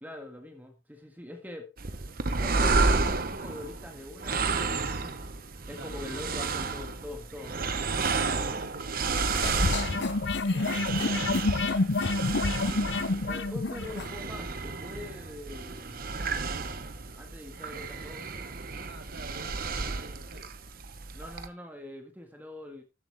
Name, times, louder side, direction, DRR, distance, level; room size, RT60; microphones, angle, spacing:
voice 1, 0.0-1.7 2.4-5.2 5.5-8.0 8.2-8.6 12.9-16.0 17.2-18.5 21.1-22.8, left 2 dB, 10° right, 1.7 m, -44 dB
sound 1, 1.8-21.5, right 4 dB, 45° right, 1.0 m, -31 dB
voice 2, 8.1-9.1 10.5-11.7 18.9-20.5, right 2 dB, 75° right, 3.7 m, -47 dB
sound 2, 9.2-14.1, left 3 dB, 60° left, 0.7 m, -28 dB
13.0 x 8.0 x 3.5 m
head